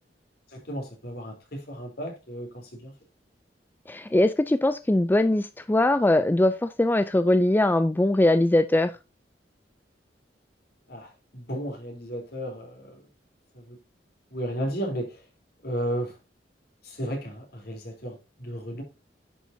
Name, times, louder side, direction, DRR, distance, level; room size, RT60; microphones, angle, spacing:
voice 1, 0.5-2.9 10.9-13.0 13.5-13.8 14.3-15.2 15.6-16.2 16.8-18.8, equal, 60° left, 3.6 m, -34 dB
voice 2, 3.9-8.9, left 1 dB, 10° left, 0.4 m, -21 dB
10.0 x 7.2 x 2.7 m
head